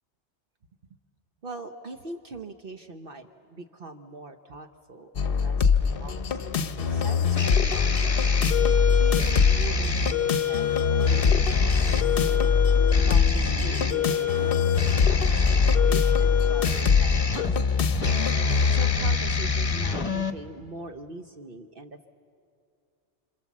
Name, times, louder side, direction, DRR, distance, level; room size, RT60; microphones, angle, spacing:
voice 1, 1.4-8.6 9.0-18.2 18.7-22.1, right 2 dB, 50° right, 5 dB, 1.1 m, -42 dB
sound 1, 5.2-19.2, left 6 dB, 55° left, 0.9 m, -23 dB
sound 2, 5.8-20.3, left 5 dB, 30° left, 1.0 m, -27 dB
sound 3, 8.2-15.1, left 4 dB, 25° right, 0.8 m, -43 dB
26.5 x 26.5 x 7.3 m, 2.3 s
omnidirectional pair, 1.2 m